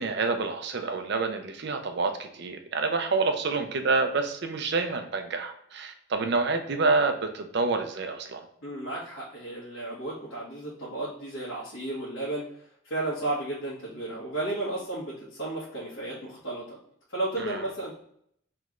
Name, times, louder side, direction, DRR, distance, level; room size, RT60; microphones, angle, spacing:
voice 1, 0.0-8.4 17.4-17.6, right 3 dB, 55° right, 5 dB, 0.5 m, -28 dB
voice 2, 8.6-12.5 12.8-16.8 17.1-17.9, right 2 dB, 75° left, -9 dB, 1.3 m, -33 dB
3.2 x 3.1 x 3.6 m, 0.68 s
head